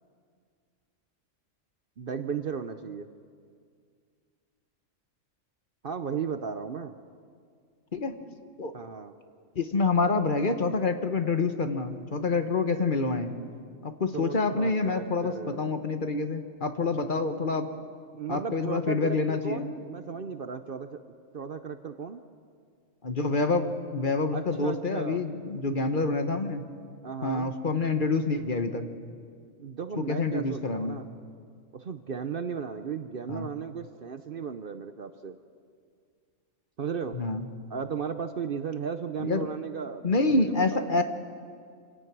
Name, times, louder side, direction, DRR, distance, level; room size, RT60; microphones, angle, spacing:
voice 1, 2.0-3.1 5.8-6.9 8.7-9.1 14.1-15.7 16.9-17.0 18.1-21.0 21.3-22.2 24.3-25.2 27.0-27.5 29.6-31.1 31.7-35.4 36.8-37.2 37.7-40.9, right 6 dB, 50° right, 9 dB, 0.8 m, -35 dB
voice 2, 9.5-13.3 13.8-17.7 18.3-19.7 23.0-26.6 27.2-28.9 30.0-31.0 33.3-33.5 37.1-37.4 39.2-39.5 40.0-41.0, left 3 dB, 40° left, 8 dB, 1.2 m, -27 dB
26.5 x 17.0 x 6.1 m, 2.1 s
omnidirectional pair, 1.4 m